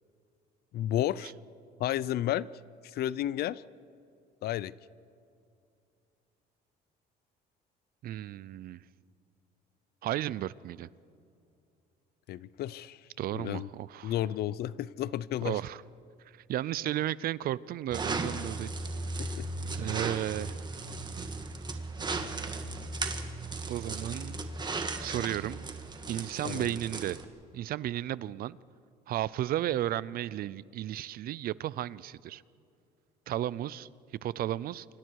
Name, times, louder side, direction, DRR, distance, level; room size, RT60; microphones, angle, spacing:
voice 1, 0.7-1.3 1.8-2.5 2.8-3.6 4.4-4.7 12.3-13.0 13.3-13.7 14.0-15.6 19.2-19.5 26.4-26.7, left 12 dB, 70° left, 20 dB, 0.6 m, -32 dB
voice 2, 8.0-8.8 10.0-10.9 13.2-14.1 15.4-15.8 16.3-18.7 19.2-19.4 19.7-20.6 23.7-24.4 25.0-25.7 26.1-27.2 27.5-28.6 29.1-32.4 33.3-33.9 34.2-34.9, right 13 dB, 60° right, 20 dB, 0.6 m, -34 dB
sound 1, 17.9-27.2, right 3 dB, 25° right, 1.9 m, -36 dB
29.5 x 25.5 x 4.8 m, 2.5 s
cardioid pair, 110°, 17 cm